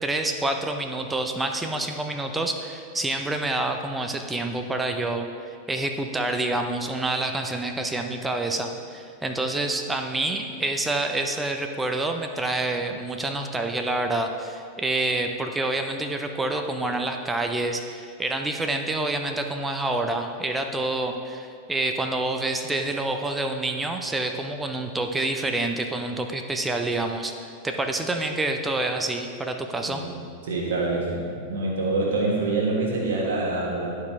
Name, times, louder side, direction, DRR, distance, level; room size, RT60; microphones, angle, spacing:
voice 1, 0.0-30.0, right 2 dB, 10° right, 5 dB, 0.5 m, -27 dB
voice 2, 29.8-30.1 30.4-34.0, right 2 dB, 55° right, -3 dB, 1.5 m, -26 dB
11.0 x 4.6 x 3.5 m, 2.3 s
figure-of-eight pair, 90°, 0 cm